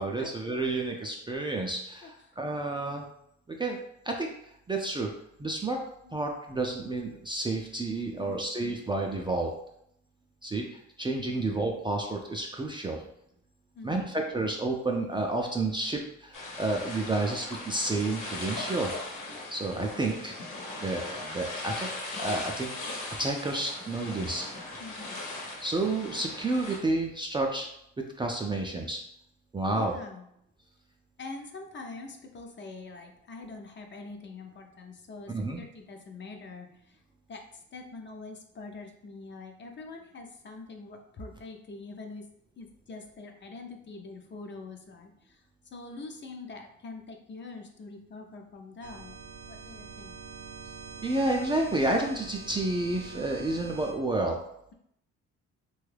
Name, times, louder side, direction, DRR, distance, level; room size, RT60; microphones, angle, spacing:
voice 1, 0.0-3.1 3.5-3.8 4.0-4.3 4.7-5.1 5.4-5.8 6.1-9.5 10.4-13.0 13.8-18.9 19.5-20.4 20.8-21.9 22.2-24.5 25.6-27.7 28.2-29.0 29.5-30.0 35.3-35.6 51.0-54.4, right 2 dB, 15° right, 1 dB, 0.4 m, -30 dB
voice 2, 8.2-8.6 11.2-11.5 13.7-14.1 19.7-20.0 24.8-25.2 29.7-30.3 31.2-37.0 37.3-42.2 42.6-45.4 45.7-49.2 49.5-50.2, left 3 dB, 40° left, 3 dB, 0.6 m, -44 dB
sound 1, 16.3-26.8, left 2 dB, 85° left, 1.0 m, -39 dB
sound 2, 48.8-53.9, right 5 dB, 70° right, 0.5 m, -45 dB
3.0 x 2.3 x 3.2 m, 0.73 s
cardioid pair, 90°, 30 cm